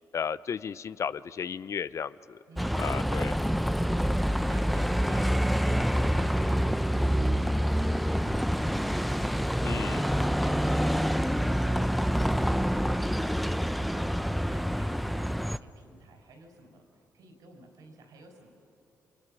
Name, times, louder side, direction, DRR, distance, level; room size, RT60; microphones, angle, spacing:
voice 1, 0.1-2.4 2.8-3.4 9.6-10.1, left 7 dB, 50° left, 17 dB, 0.5 m, -34 dB
Bus, 2.6-15.6, equal, ahead, 0.6 m, -27 dB
voice 2, 4.0-5.3 5.6-12.3 13.5-16.8 17.1-18.5, right 2 dB, 80° right, 3 dB, 4.6 m, -51 dB
29.0 x 24.5 x 6.4 m, 2.7 s
cardioid pair, 70°, 6 cm